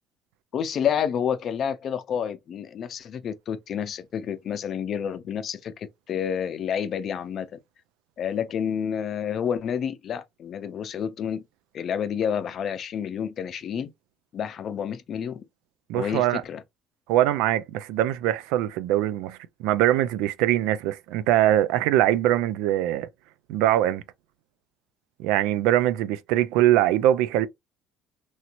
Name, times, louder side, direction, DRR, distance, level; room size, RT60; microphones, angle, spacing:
voice 1, 0.5-7.5 8.2-11.4 11.7-13.9 14.3-15.4 15.9-16.6, left 8 dB, 55° left, 0.5 m, -29 dB
voice 2, 15.9-16.4 17.1-23.1 23.5-24.0 25.2-27.5, right 13 dB, 85° right, 0.3 m, -22 dB
3.1 x 2.8 x 2.5 m
supercardioid pair, 90°, 0 cm